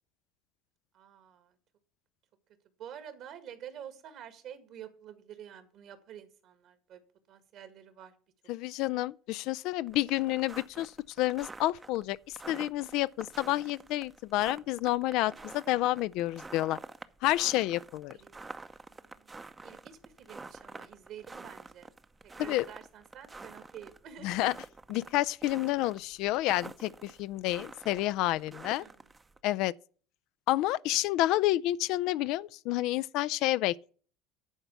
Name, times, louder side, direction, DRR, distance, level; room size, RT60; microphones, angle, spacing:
voice 1, 0.9-1.5 2.8-7.0 7.3-8.1 8.7-8.8 18.1-18.6 18.9-21.9 22.2-24.3 28.5-29.1, right 9 dB, 55° right, 1.8 m, -49 dB
voice 2, 8.5-10.9 11.2-16.8 17.2-18.2 22.4-22.6 24.2-24.5 24.9-28.8 29.4-29.7 30.5-33.9, left 16 dB, 65° left, 0.4 m, -29 dB
sound 1, 9.9-29.4, right 3 dB, 20° right, 0.7 m, -48 dB
11.0 x 4.5 x 8.1 m
supercardioid pair, 85°, 0 cm